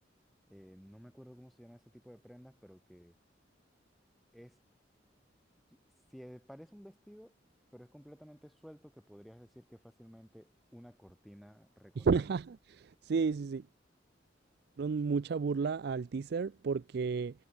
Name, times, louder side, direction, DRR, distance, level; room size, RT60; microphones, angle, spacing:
voice 1, 0.5-3.1 4.3-4.6 6.1-7.3 7.7-12.1, equal, ahead, 3.7 m, -54 dB
voice 2, 12.0-13.6 14.8-17.3, right 5 dB, 60° right, 0.4 m, -32 dB
head